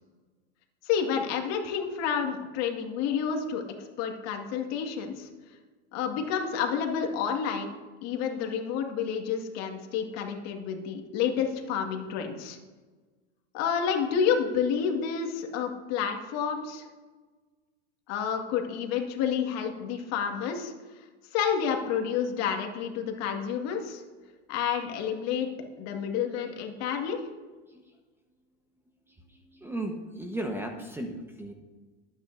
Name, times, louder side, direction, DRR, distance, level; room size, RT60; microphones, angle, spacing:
voice 1, 0.8-5.3 5.9-7.7 8.0-12.6 13.5-16.9 18.1-20.7 21.3-24.0 24.5-25.5 25.8-27.2, left 7 dB, 50° left, 3 dB, 2.1 m, -29 dB
voice 2, 29.1-31.5, right 1 dB, 5° right, 3 dB, 1.2 m, -36 dB
20.5 x 9.1 x 2.7 m, 1.3 s
hypercardioid pair, 115°, 34 cm